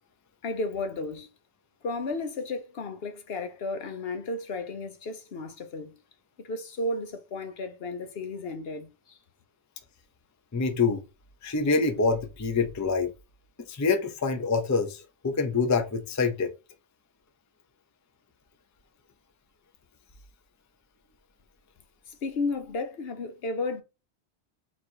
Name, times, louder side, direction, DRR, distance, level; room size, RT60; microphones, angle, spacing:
voice 1, 0.4-1.3 1.8-6.0 6.4-9.2 22.1-23.8, left 3 dB, 60° left, 0.9 m, -33 dB
voice 2, 10.5-11.0 11.4-13.1 13.7-16.5, left 4 dB, 20° left, 0.5 m, -26 dB
4.1 x 2.5 x 4.4 m
omnidirectional pair, 1.2 m